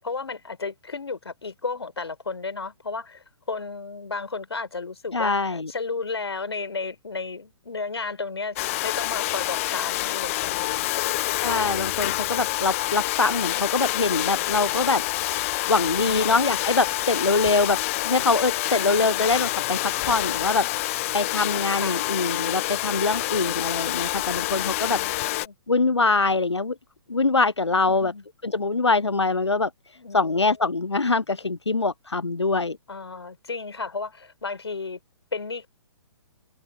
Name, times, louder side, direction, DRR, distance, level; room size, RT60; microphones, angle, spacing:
voice 1, 0.0-11.4 12.1-12.5 16.1-16.4 18.7-19.3 21.8-22.0 24.9-25.5 27.9-28.2 30.0-30.5 32.9-35.0 35.3-35.7, left 4 dB, 70° left, 5.4 m, -34 dB
voice 2, 5.1-5.7 11.4-15.0 15.7-25.0 25.7-26.8 27.1-28.1 28.4-32.8, left 3 dB, 90° left, 0.6 m, -24 dB
Domestic sounds home sounds, 8.6-25.5, left 18 dB, 30° left, 0.6 m, -27 dB
figure-of-eight pair, 125°, 14 cm